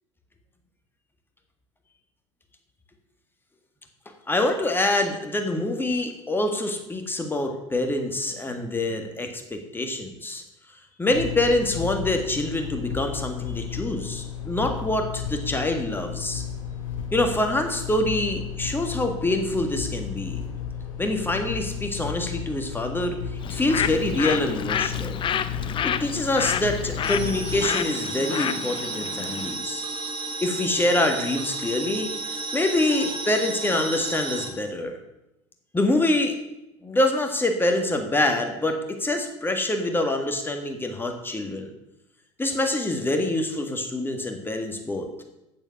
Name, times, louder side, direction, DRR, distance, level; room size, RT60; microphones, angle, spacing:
voice 1, 4.3-10.4 11.0-16.4 17.1-20.4 21.0-23.2 23.5-25.2 25.8-29.8 30.4-35.0 35.7-36.4 36.8-41.7 42.4-45.1, left 1 dB, 10° left, 4 dB, 1.7 m, -25 dB
sound 1, 11.1-27.7, left 7 dB, 80° left, 2.2 m, -33 dB
Bird, 23.4-29.6, left 9 dB, 30° left, 0.6 m, -29 dB
sound 2, 27.0-34.5, right 3 dB, 30° right, 2.0 m, -32 dB
8.0 x 7.2 x 6.5 m, 0.92 s
figure-of-eight pair, 75°, 17 cm